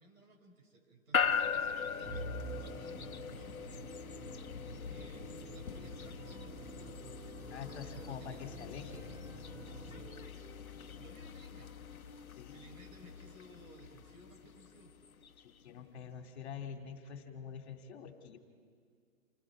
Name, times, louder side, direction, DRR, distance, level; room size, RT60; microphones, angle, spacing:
voice 1, 0.0-4.1 4.9-9.4 9.8-10.5 11.0-11.7 12.5-14.9, right 1 dB, 75° right, 2 dB, 6.1 m, -58 dB
sound 1, 1.1-15.4, left 7 dB, 90° left, 1.2 m, -40 dB
Musical instrument, 2.1-10.6, right 3 dB, 15° right, 1.7 m, -48 dB
Wind instrument woodwind instrument, 5.2-8.6 8.9-12.8, right 4 dB, 60° right, 2.3 m, -62 dB
voice 2, 7.5-8.9 12.3-12.6 15.4-18.4, left 7 dB, 50° left, 4 dB, 2.6 m, -46 dB
29.0 x 19.0 x 4.8 m, 2.1 s
hypercardioid pair, 145°, 41 cm